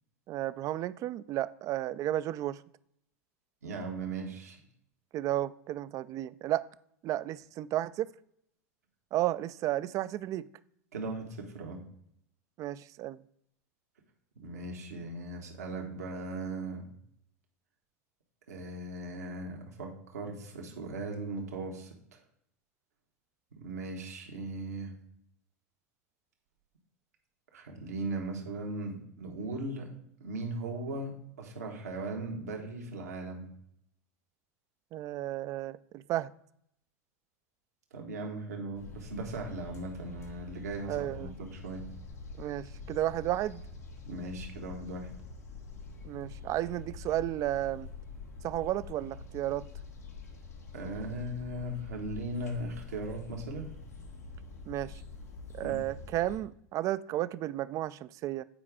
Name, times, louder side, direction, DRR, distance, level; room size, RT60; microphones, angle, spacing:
voice 1, 0.3-2.6 5.1-6.7 7.0-8.1 9.1-10.5 12.6-13.2 34.9-36.3 40.9-41.3 42.4-43.6 46.0-47.9 48.4-49.7 54.7-54.9 55.5-58.4, right 14 dB, 40° right, 17 dB, 0.4 m, -33 dB
voice 2, 3.6-4.6 10.9-11.8 14.4-16.9 18.5-22.2 23.5-24.9 27.5-29.9 30.2-33.5 37.9-41.8 44.1-45.1 50.7-53.8 55.6-55.8, right 2 dB, 80° right, 1 dB, 1.4 m, -38 dB
sound 1, 38.7-56.4, left 4 dB, 90° left, 1.4 m, -46 dB
8.7 x 4.8 x 3.6 m, 0.71 s
hypercardioid pair, 95°, 8 cm